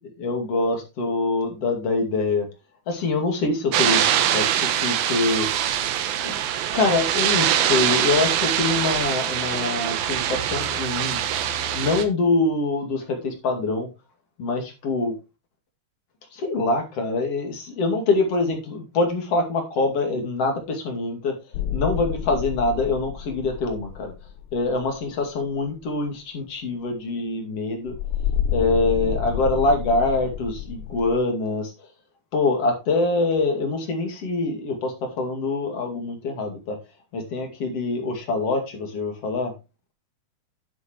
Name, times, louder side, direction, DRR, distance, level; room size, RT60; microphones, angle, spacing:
voice 1, 0.2-2.5 2.9-4.0 4.3-5.5 6.2-6.4 6.7-11.2 11.7-13.9 14.4-15.1 16.3-21.3 21.7-24.1 24.5-28.0 28.5-31.7 32.3-36.8 37.1-39.5, left 3 dB, 45° left, 3 dB, 3.0 m, -24 dB
sound 1, 3.7-12.1, right 10 dB, 75° right, 2.8 m, -23 dB
sound 2, 21.5-25.1 27.9-31.2, left 9 dB, 80° left, 2.2 m, -29 dB
10.5 x 8.0 x 3.1 m, 0.26 s
omnidirectional pair, 4.5 m